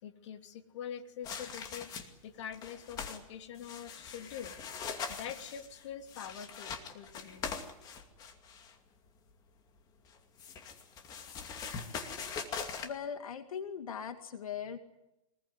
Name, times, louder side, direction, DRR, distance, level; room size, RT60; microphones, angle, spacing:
voice 1, 0.0-4.6 5.0-7.4, left 8 dB, 55° left, 6 dB, 2.8 m, -45 dB
sound 1, 1.2-2.2 2.5-3.2 3.6-8.7 10.1-12.9, left 6 dB, 20° left, 2.4 m, -42 dB
voice 2, 12.8-14.8, left 7 dB, 85° left, 7 dB, 2.2 m, -40 dB
23.5 x 21.0 x 9.7 m, 0.91 s
hypercardioid pair, 155°, 18 cm